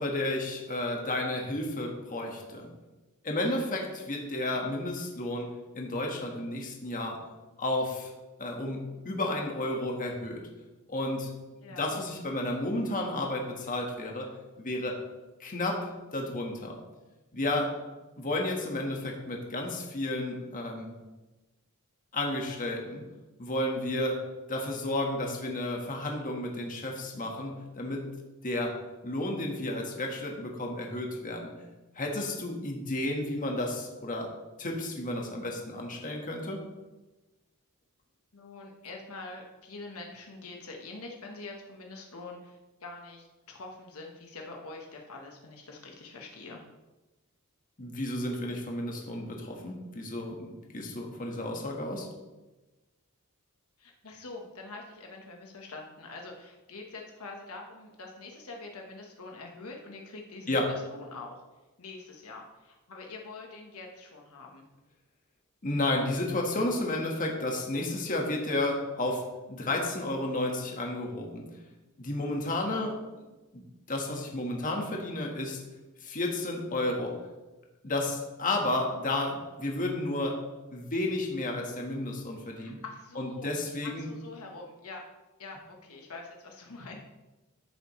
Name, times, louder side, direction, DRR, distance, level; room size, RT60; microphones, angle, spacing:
voice 1, 0.0-2.7 3.2-7.2 7.6-8.1 8.4-10.4 10.9-11.3 11.8-14.3 14.6-15.0 15.4-16.8 17.3-17.7 18.2-20.9 22.1-23.0 23.4-24.2 24.5-28.1 28.4-28.8 29.0-31.5 31.9-34.3 34.6-36.6 47.8-52.1 60.5-60.7 65.6-71.4 72.0-72.9 73.5-75.6 76.0-77.2 77.8-80.4 80.7-82.8 83.1-84.1, left 1 dB, 40° left, 1 dB, 1.5 m, -32 dB
voice 2, 11.6-12.0 38.3-46.6 53.8-61.4 61.8-64.6 72.6-72.9 82.5-83.5 83.8-85.0 85.4-87.1, left 3 dB, 75° left, 1 dB, 1.3 m, -45 dB
13.5 x 6.9 x 3.2 m, 1.1 s
head